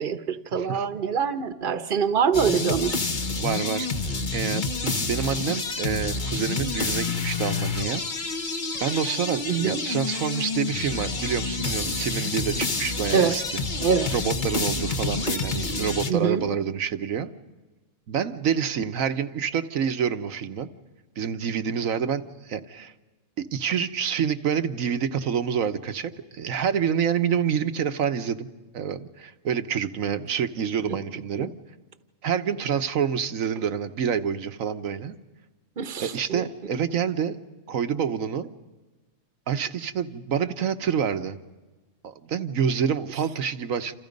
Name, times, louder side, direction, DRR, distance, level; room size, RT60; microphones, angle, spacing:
voice 1, 0.0-2.9 9.5-9.8 13.1-13.4 13.8-14.1 16.1-16.4 31.4-31.5 35.8-36.4, right 6 dB, 40° right, 11 dB, 1.2 m, -24 dB
voice 2, 0.5-0.9 3.4-3.9 4.3-8.0 8.8-13.6 14.1-17.3 18.1-20.7 21.2-22.9 23.4-28.5 28.7-31.5 32.2-35.1 36.0-37.4 37.7-38.5 39.5-41.4 42.0-43.9, right 7 dB, 75° right, 10 dB, 1.4 m, -27 dB
sound 1, 2.3-16.1, left 3 dB, 40° left, 1.3 m, -28 dB
28.5 x 28.0 x 5.3 m, 1.2 s
omnidirectional pair, 1.4 m